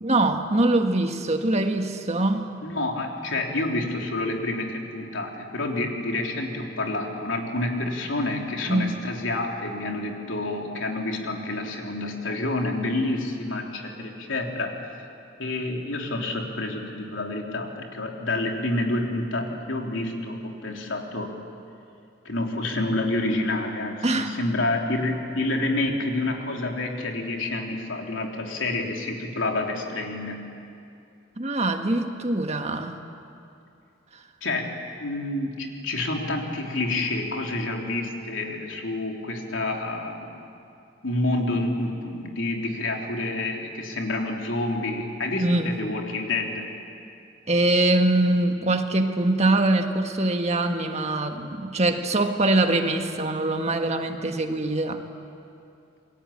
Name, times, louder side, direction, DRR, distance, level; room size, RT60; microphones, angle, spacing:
voice 1, 0.0-2.5 8.7-8.9 24.0-24.3 31.4-33.0 45.4-45.8 47.5-55.0, right 2 dB, 35° right, 5 dB, 1.6 m, -23 dB
voice 2, 2.6-14.8 15.4-21.3 22.3-30.4 34.4-34.7 35.0-40.4 41.0-46.7, left 2 dB, 85° left, 1 dB, 3.5 m, -28 dB
28.5 x 22.0 x 8.7 m, 2.5 s
head